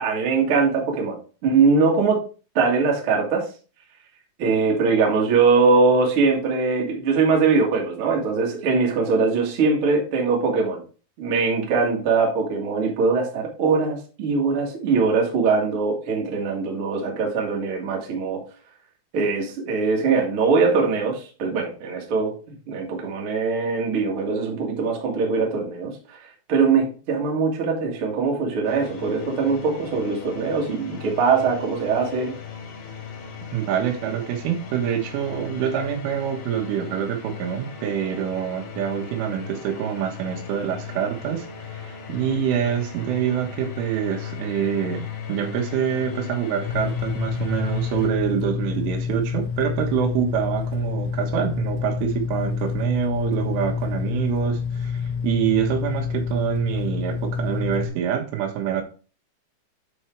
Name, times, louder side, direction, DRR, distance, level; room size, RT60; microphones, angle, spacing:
voice 1, 0.0-2.2 2.5-3.5 4.4-10.8 11.2-18.4 19.1-22.3 22.7-25.9 26.5-32.3, right 4 dB, 50° right, -1 dB, 1.6 m, -21 dB
sound 1, 28.6-48.1, left 7 dB, 65° left, 3.7 m, -37 dB
voice 2, 33.5-41.5 41.7-58.8, right 9 dB, 85° right, 2 dB, 3.8 m, -26 dB
sound 2, 46.7-57.9, left 6 dB, 85° left, 2.1 m, -28 dB
8.7 x 4.5 x 4.5 m, 0.36 s
omnidirectional pair, 5.5 m